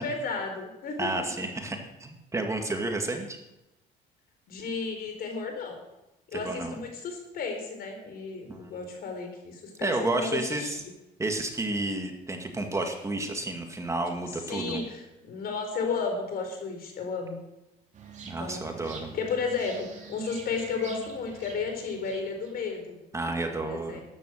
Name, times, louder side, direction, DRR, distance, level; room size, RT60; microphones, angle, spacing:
voice 1, 0.0-1.3 4.5-5.8 6.3-10.7 14.5-17.4 18.4-23.0 23.6-24.0, left 4 dB, 65° left, 4 dB, 4.4 m, -33 dB
voice 2, 1.0-3.4 6.3-6.8 8.5-8.6 9.8-10.8 11.2-14.8 18.2-19.1 23.1-24.0, right 2 dB, 15° right, 3 dB, 2.1 m, -31 dB
sound 1, 17.9-23.0, right 6 dB, 45° right, 3.1 m, -46 dB
13.0 x 10.5 x 6.5 m, 0.97 s
cardioid pair, 110°, 17 cm